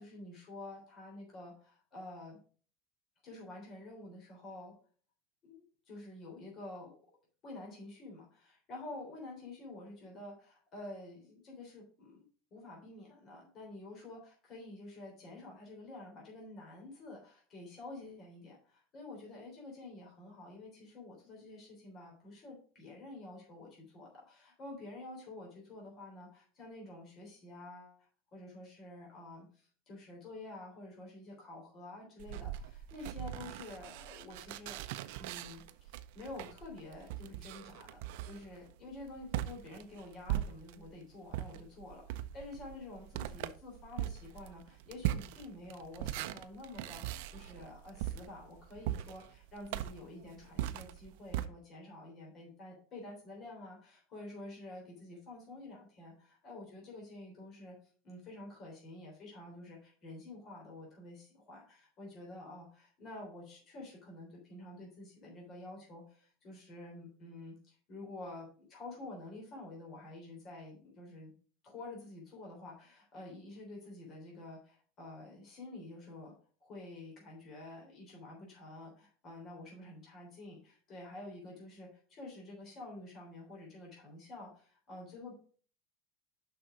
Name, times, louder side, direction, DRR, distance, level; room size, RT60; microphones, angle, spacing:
voice 1, 0.0-2.4 3.2-4.7 5.4-6.9 7.4-12.2 12.5-34.8 35.2-38.0 38.3-57.8 58.0-71.3 71.6-76.3 76.6-85.3, left 2 dB, 35° left, -1 dB, 3.4 m, -49 dB
sound 1, 32.2-40.9 41.3-51.5, right 13 dB, 70° right, 0.5 m, -40 dB
6.6 x 5.7 x 4.9 m, 0.43 s
supercardioid pair, 145°, 0 cm